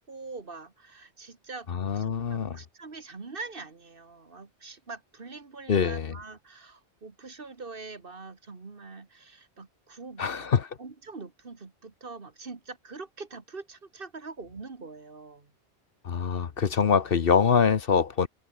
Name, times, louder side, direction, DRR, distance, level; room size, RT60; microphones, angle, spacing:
voice 1, 0.1-1.7 1.9-10.5 10.8-15.5, right 4 dB, 55° right, 2.0 m, -43 dB
voice 2, 1.7-2.6 5.7-6.1 10.2-10.7 16.0-18.3, left 6 dB, 55° left, 1.1 m, -24 dB
omnidirectional pair, 1.1 m